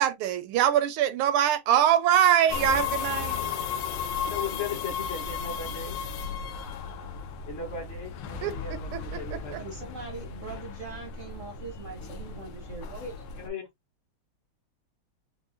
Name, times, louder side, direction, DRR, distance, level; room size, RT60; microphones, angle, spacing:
voice 1, 0.0-3.4 8.4-9.0 9.5-9.6, right 10 dB, 90° right, 1.5 m, -23 dB
sound 1, 2.5-13.5, left 6 dB, 85° left, 1.5 m, -35 dB
voice 2, 4.2-6.0 7.5-9.6 13.4-13.6, left 5 dB, 40° left, 0.9 m, -37 dB
voice 3, 9.6-13.2, right 4 dB, 60° right, 0.8 m, -41 dB
4.7 x 2.1 x 2.6 m
omnidirectional pair, 2.3 m